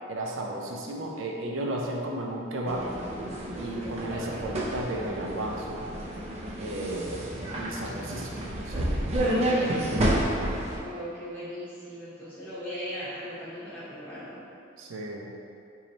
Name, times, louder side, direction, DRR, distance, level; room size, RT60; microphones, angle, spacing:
voice 1, 0.1-2.9 3.6-5.8 6.6-7.3 7.6-10.0 14.8-15.3, right 1 dB, 85° right, 0 dB, 0.5 m, -34 dB
sound 1, 2.7-10.8, right 1 dB, 35° right, 0.5 m, -30 dB
voice 2, 4.1-4.4 10.7-14.4, equal, 5° left, -13 dB, 0.9 m, -38 dB
3.1 x 2.7 x 4.0 m, 2.6 s
head